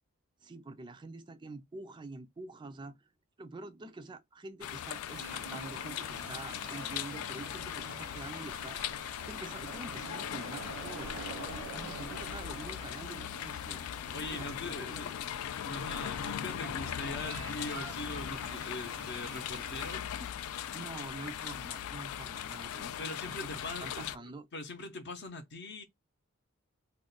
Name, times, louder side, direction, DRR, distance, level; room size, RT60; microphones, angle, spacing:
voice 1, 0.4-3.1 3.4-8.8 9.3-13.8 14.3-15.1 20.7-24.5, right 2 dB, 20° right, 0.4 m, -46 dB
sound 1, 4.6-24.2, left 10 dB, 80° left, 0.3 m, -39 dB
sound 2, 5.1-20.0, right 3 dB, 85° right, 0.8 m, -48 dB
voice 2, 14.1-15.1 15.6-20.3 23.0-24.1 24.5-25.8, left 2 dB, 50° left, 0.7 m, -41 dB
2.4 x 2.2 x 3.8 m
head